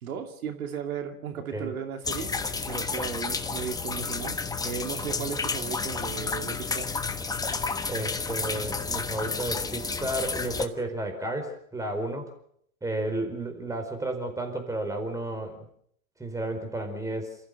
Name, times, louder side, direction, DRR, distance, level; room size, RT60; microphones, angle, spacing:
voice 1, 0.0-4.4 4.6-6.9, right 7 dB, 80° right, 5 dB, 2.7 m, -36 dB
sound 1, 2.0-10.7, left 4 dB, 10° left, 1.1 m, -31 dB
voice 2, 7.9-12.3 12.8-15.7 16.2-17.4, right 1 dB, 5° right, 5 dB, 4.6 m, -32 dB
28.0 x 15.0 x 6.7 m, 0.68 s
hypercardioid pair, 115°, 43 cm